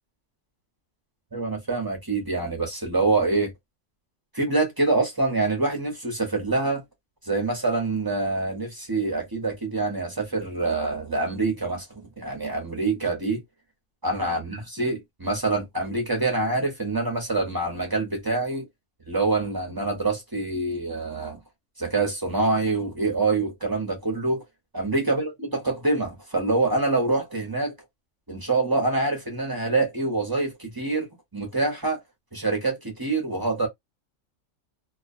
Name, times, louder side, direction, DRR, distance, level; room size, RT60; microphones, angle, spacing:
voice 1, 1.3-3.5 4.3-6.8 7.3-13.4 14.0-18.7 19.1-21.4 21.8-24.4 24.7-27.7 28.3-31.1 31.3-32.0 32.3-33.7, right 3 dB, 20° right, 0.7 m, -25 dB
2.3 x 2.2 x 2.5 m
omnidirectional pair, 1.4 m